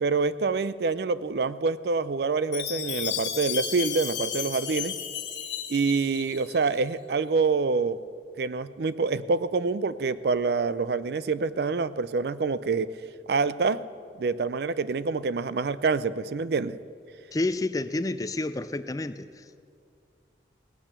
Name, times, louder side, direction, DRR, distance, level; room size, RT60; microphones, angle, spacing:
voice 1, 0.0-4.9 5.7-8.0 8.4-12.9 13.3-13.8 14.2-16.8, right 4 dB, 60° right, 16 dB, 0.4 m, -26 dB
Chime, 2.5-6.7, left 9 dB, 70° left, 1.4 m, -33 dB
voice 2, 17.3-19.7, left 2 dB, 20° left, 13 dB, 0.4 m, -30 dB
17.5 x 8.9 x 6.8 m, 2.3 s
head